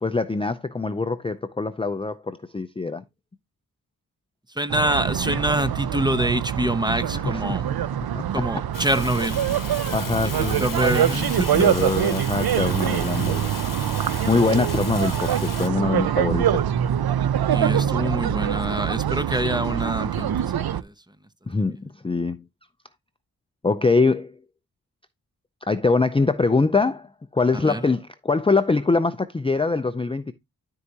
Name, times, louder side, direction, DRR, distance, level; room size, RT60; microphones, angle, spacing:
voice 1, 0.0-3.0 7.1-7.6 8.1-8.2 9.9-10.6 11.5-13.5 14.3-16.7 21.5-22.4 23.6-24.3 25.7-30.3, left 3 dB, 15° left, 0.5 m, -23 dB
voice 2, 4.5-7.7 8.3-9.4 10.2-11.7 17.5-20.9 27.5-27.9, right 1 dB, 10° right, 0.9 m, -26 dB
sound 1, 4.7-20.8, right 10 dB, 90° right, 0.6 m, -24 dB
Fire, 8.7-15.7, left 7 dB, 60° left, 0.9 m, -37 dB
12.5 x 4.7 x 2.8 m
wide cardioid pair, 75°, 36 cm